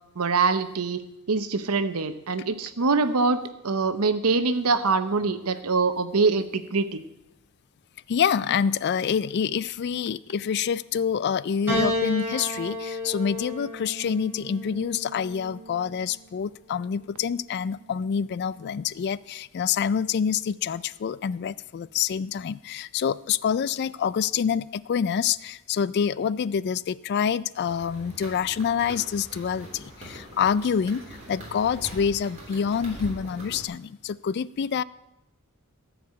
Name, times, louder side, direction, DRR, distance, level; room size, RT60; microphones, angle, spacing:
voice 1, 0.2-1.0 1.3-7.0, right 4 dB, 80° right, 11 dB, 0.8 m, -24 dB
voice 2, 8.1-34.8, left 7 dB, 50° left, 19 dB, 0.3 m, -27 dB
Piano, 11.7-16.2 17.2-17.9, left 1 dB, 10° right, 4.8 m, -32 dB
sound 1, 27.6-33.7, right 1 dB, 30° right, 3.5 m, -42 dB
14.0 x 4.8 x 8.4 m, 0.91 s
head